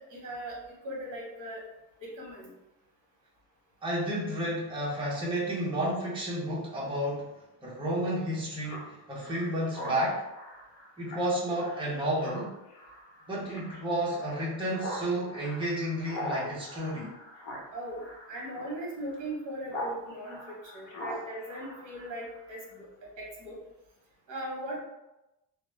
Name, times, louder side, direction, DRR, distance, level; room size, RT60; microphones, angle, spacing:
voice 1, 0.1-1.6 2.0-2.5 17.7-18.0 18.3-22.9 23.2-23.6 24.3-24.8, right 1 dB, 45° right, -3 dB, 0.9 m, -39 dB
voice 2, 3.8-7.3 7.6-10.2 11.0-12.5 13.3-17.1, right 1 dB, 15° right, -6 dB, 0.5 m, -31 dB
Speech synthesizer, 8.6-19.9 20.2-22.5, equal, 75° left, 0.8 m, -42 dB
2.2 x 2.0 x 3.0 m, 0.96 s
cardioid pair, 170°, 41 cm